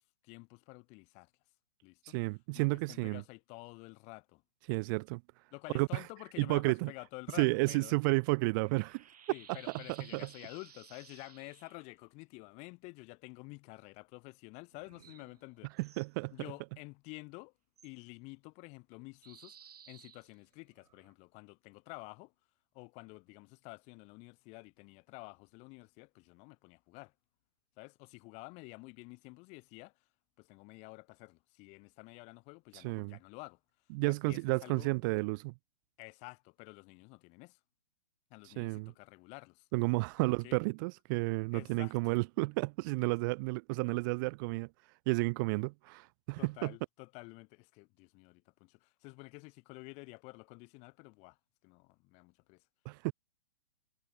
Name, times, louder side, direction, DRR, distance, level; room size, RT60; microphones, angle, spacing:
voice 1, 0.2-1.3 1.8-2.2 2.5-4.4 5.5-8.0 9.3-15.7 16.3-17.5 17.8-22.3 22.7-27.1 27.8-30.0 30.4-33.6 34.0-34.9 36.0-37.6 38.3-39.7 40.2-40.6 41.5-42.5 46.4-51.4 51.6-52.6, left 28 dB, 30° left, 1.5 m, -50 dB
voice 2, 2.1-3.2 4.7-5.2 5.7-6.0 6.4-6.9 7.4-9.0 9.5-9.6 10.1-10.3 15.8-16.3 32.7-33.2 33.9-35.5 38.4-38.9 39.7-44.7 45.1-46.7 52.9-53.1, right 27 dB, 30° right, 0.5 m, -32 dB
sound 1, 7.5-11.9 14.7-16.1 17.8-17.9 19.2-21.1, right 8 dB, 65° right, 2.3 m, -58 dB
figure-of-eight pair, 120°, 21 cm